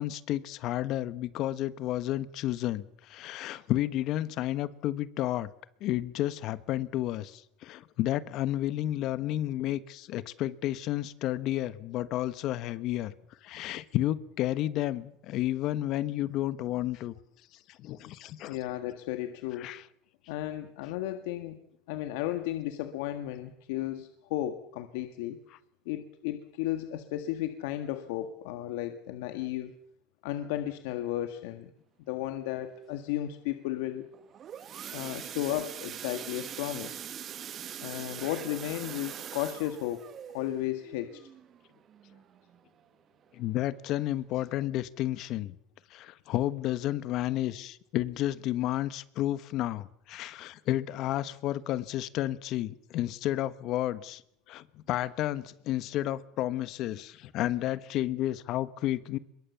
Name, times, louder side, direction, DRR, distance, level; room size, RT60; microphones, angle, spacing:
voice 1, 0.0-5.5 5.8-13.1 13.4-17.1 17.8-18.6 19.6-19.8 43.3-45.5 45.9-54.2 54.5-59.2, left 14 dB, 55° left, 15 dB, 1.2 m, -31 dB
voice 2, 18.4-19.7 20.3-25.4 25.8-29.7 30.2-31.7 32.1-34.1 34.9-37.0 37.8-40.0 40.3-41.2, left 13 dB, 85° left, 8 dB, 1.7 m, -34 dB
sound 1, 34.1-42.8 43.2-43.5 43.8-43.9 44.3-44.4, right 9 dB, 35° right, 1.2 m, -43 dB
25.0 x 22.0 x 7.0 m, 0.71 s
cardioid pair, 135°, 0 cm